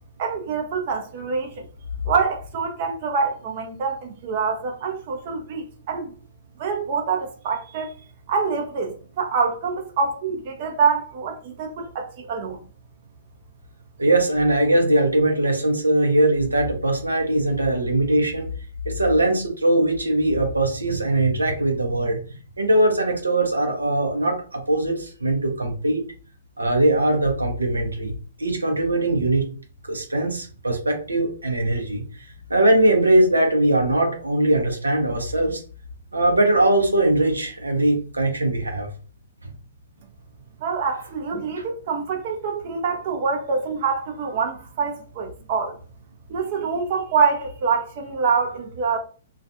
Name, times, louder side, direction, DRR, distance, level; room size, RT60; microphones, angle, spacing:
voice 1, 0.2-1.7 2.1-6.1 6.6-7.9 8.3-12.6 40.6-45.8 46.3-49.0, right 5 dB, 45° right, 0.6 m, -25 dB
voice 2, 14.0-18.5 18.9-22.2 22.6-26.0 26.6-28.1 28.4-29.5 29.8-32.0 32.5-35.6 36.1-38.9 41.6-41.7, right 1 dB, 90° right, 0.7 m, -21 dB
2.4 x 2.3 x 2.6 m
figure-of-eight pair, 120°, 0 cm